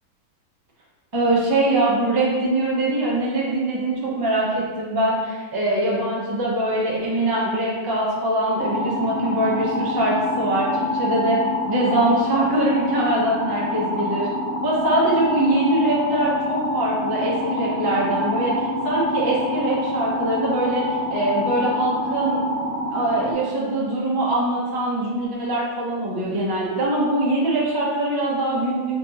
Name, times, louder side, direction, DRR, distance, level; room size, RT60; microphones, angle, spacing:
voice 1, 1.1-11.4 11.7-14.3 14.6-22.4 22.9-29.0, right 1 dB, 30° right, -5 dB, 0.4 m, -22 dB
sound 1, 8.6-23.3, left 1 dB, 70° left, 1.1 m, -26 dB
4.3 x 3.9 x 2.9 m, 1.5 s
omnidirectional pair, 1.9 m